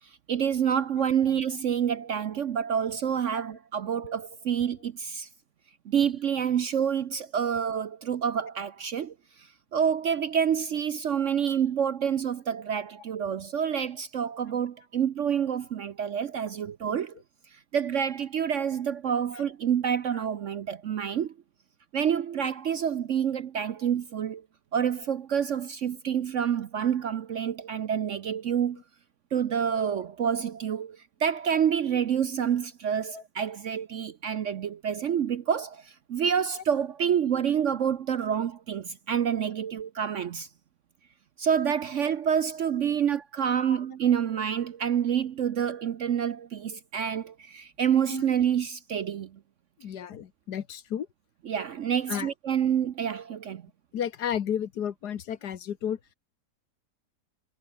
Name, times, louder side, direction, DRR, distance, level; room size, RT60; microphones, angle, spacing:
voice 1, 0.3-5.3 5.9-9.1 9.7-17.1 17.7-21.3 21.9-24.4 24.7-28.8 29.3-40.5 41.4-49.3 51.5-53.6, right 8 dB, 55° right, 0.9 m, -28 dB
voice 2, 49.8-51.1 52.1-52.3 53.9-56.0, left 9 dB, 70° left, 1.7 m, -32 dB
omnidirectional pair, 1.8 m